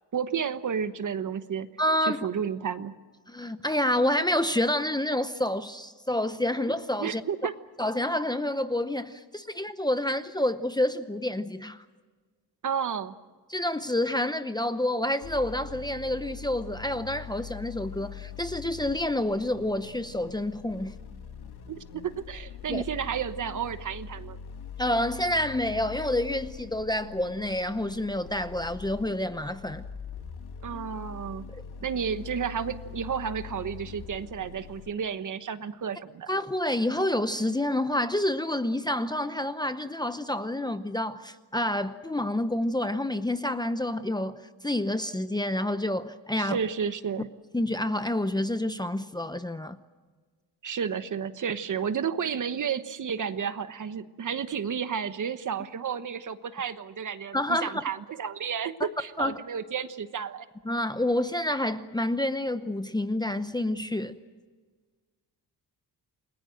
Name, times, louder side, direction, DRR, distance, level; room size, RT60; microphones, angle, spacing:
voice 1, 0.1-1.7 2.0-2.9 7.0-7.5 12.6-13.1 21.7-24.4 30.6-31.5 31.8-36.3 46.3-47.3 50.6-60.5, right 7 dB, 45° right, 11 dB, 1.2 m, -32 dB
voice 2, 1.8-2.3 3.3-7.2 7.8-11.8 13.5-21.0 22.7-22.8 24.8-29.8 31.5-31.6 36.3-44.4 44.6-46.6 47.5-49.8 57.3-57.7 59.2-59.3 60.7-64.2, left 1 dB, 10° left, 10 dB, 0.8 m, -28 dB
sound 1, 15.2-34.9, left 7 dB, 65° left, 1.9 m, -43 dB
29.0 x 20.0 x 7.7 m, 1.4 s
cardioid pair, 135°, 41 cm